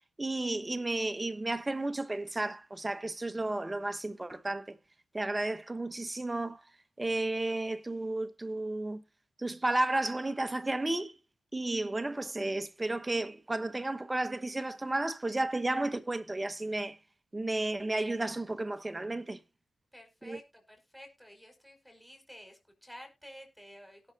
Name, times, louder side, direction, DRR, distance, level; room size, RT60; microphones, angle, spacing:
voice 1, 0.2-4.8 5.1-6.6 7.0-9.0 9.4-11.2 11.5-17.0 17.3-19.4 20.2-20.4, right 2 dB, 20° right, 1.1 m, -33 dB
voice 2, 19.9-24.1, equal, ahead, 5.2 m, -52 dB
17.5 x 6.4 x 2.9 m
wide cardioid pair, 100°, 0 cm